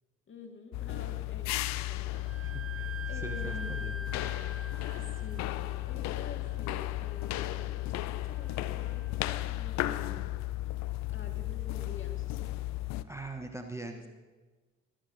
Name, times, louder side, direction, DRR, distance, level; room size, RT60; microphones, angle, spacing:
voice 1, 0.3-2.6 3.1-4.0 4.9-10.3 11.1-12.4 13.8-14.1, left 3 dB, 30° left, 4 dB, 1.8 m, -48 dB
sound 1, 0.7-13.0, left 16 dB, 45° left, 0.5 m, -34 dB
Wind instrument woodwind instrument, 2.1-9.6, right 4 dB, 35° right, 1.6 m, -47 dB
voice 2, 2.4-4.0 13.1-14.0, right 2 dB, 5° right, 5 dB, 0.8 m, -42 dB
22.5 x 8.7 x 2.7 m, 1.3 s
figure-of-eight pair, 50°, 38 cm